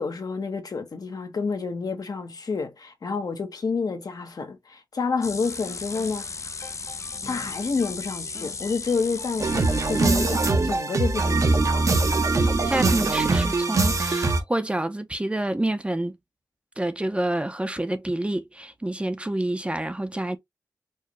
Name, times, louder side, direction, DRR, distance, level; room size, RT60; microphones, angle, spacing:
voice 1, 0.0-6.3 7.3-12.0, left 4 dB, 70° left, 1.0 m, -29 dB
sound 1, 5.2-10.5, left 4 dB, 50° left, 0.5 m, -35 dB
sound 2, 9.4-14.4, right 3 dB, 55° right, 0.9 m, -22 dB
voice 2, 12.3-16.2 16.8-20.4, right 1 dB, 15° right, 0.6 m, -28 dB
4.5 x 2.3 x 2.9 m
wide cardioid pair, 65°, 7 cm